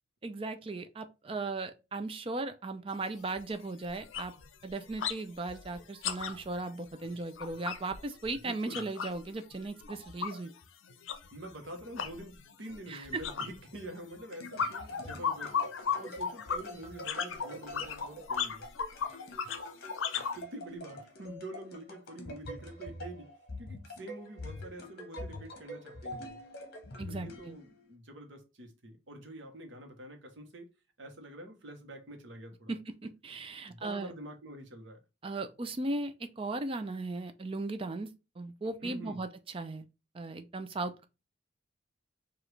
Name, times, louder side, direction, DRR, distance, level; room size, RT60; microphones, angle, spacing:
voice 1, 0.2-4.3 4.6-10.5 12.9-13.2 27.0-27.6 32.7-34.1 35.2-38.1 38.4-39.3 39.5-39.9 40.1-41.0, right 2 dB, 25° right, 0.4 m, -37 dB
sound 1, 2.9-3.0 3.4-3.6 3.9-5.2 5.5-9.2 9.5-20.4, left 6 dB, 75° left, 0.6 m, -36 dB
voice 2, 8.4-8.9 11.3-15.5 15.9-18.6 20.3-26.4 27.1-30.7 31.0-32.7 33.7-35.0 38.8-39.2, right 1 dB, 65° right, 1.0 m, -46 dB
sound 2, 14.0-27.9, left 1 dB, 50° left, 1.1 m, -45 dB
4.8 x 2.5 x 3.2 m
head